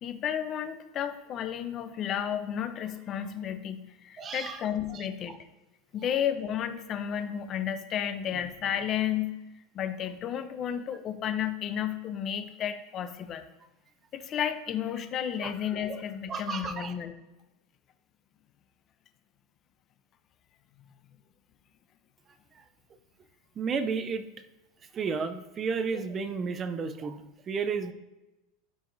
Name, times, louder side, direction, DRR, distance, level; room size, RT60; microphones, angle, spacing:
voice 1, 0.0-5.4 5.9-9.4 9.7-13.4 14.1-17.1, left 9 dB, 30° left, 9 dB, 0.7 m, -32 dB
voice 2, 4.2-4.6 4.9-5.4 15.4-16.0 16.3-16.9 23.6-24.2 24.9-27.9, right 5 dB, 25° right, 10 dB, 0.6 m, -33 dB
11.5 x 4.7 x 2.7 m, 1.0 s
supercardioid pair, 150°, 0 cm